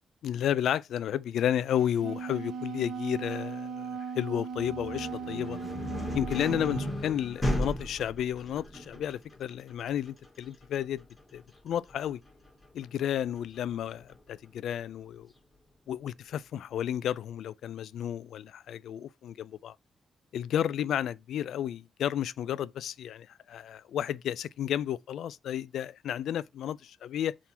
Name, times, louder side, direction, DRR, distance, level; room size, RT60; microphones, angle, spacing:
voice 1, 0.2-5.6 6.1-11.0 11.3-12.2 12.7-15.3 15.9-19.7 20.3-27.4, left 10 dB, 90° left, 0.4 m, -32 dB
Wind instrument woodwind instrument, 1.8-6.9, right 6 dB, 70° right, 0.9 m, -38 dB
sound 1, 4.5-14.3, left 1 dB, 15° left, 2.3 m, -37 dB
5.9 x 3.7 x 4.3 m
wide cardioid pair, 145°, 0 cm